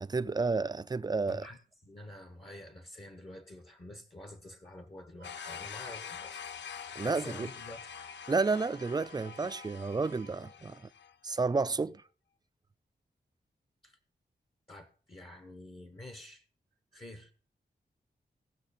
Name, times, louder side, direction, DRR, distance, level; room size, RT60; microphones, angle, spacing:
voice 1, 0.0-1.5 7.0-7.5 8.3-10.8 11.2-12.0, right 4 dB, 25° right, 0.4 m, -31 dB
voice 2, 1.3-6.4 6.8-7.9 13.8-14.0 14.7-16.4 16.9-17.3, left 1 dB, 30° left, 1.0 m, -48 dB
sound 1, 5.2-11.1, left 8 dB, 90° left, 0.4 m, -45 dB
sound 2, 5.2-10.4, right 9 dB, 85° right, 0.8 m, -56 dB
18.0 x 6.3 x 4.2 m
wide cardioid pair, 95°, 18 cm